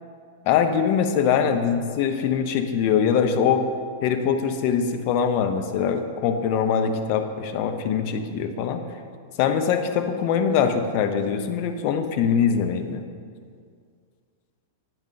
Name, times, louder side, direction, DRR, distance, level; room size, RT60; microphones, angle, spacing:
voice 1, 0.5-3.7 4.0-8.8 9.4-13.0, left 7 dB, 50° left, 7 dB, 0.6 m, -23 dB
8.7 x 5.1 x 3.3 m, 2.1 s
figure-of-eight pair, 100°, 0 cm